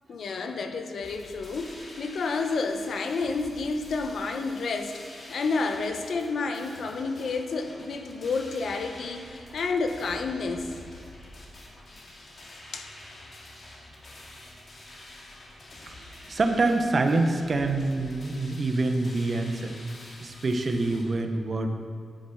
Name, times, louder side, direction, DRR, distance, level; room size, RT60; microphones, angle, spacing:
voice 1, 0.1-5.0 5.3-10.7 12.7-12.9, left 4 dB, 75° left, 5 dB, 0.9 m, -30 dB
sound 1, 1.0-21.0, left 1 dB, 55° left, 2.3 m, -47 dB
voice 2, 16.3-19.7 20.2-21.7, right 2 dB, 50° right, 5 dB, 1.1 m, -26 dB
9.9 x 6.8 x 6.3 m, 2.1 s
cardioid pair, 65°, 0 cm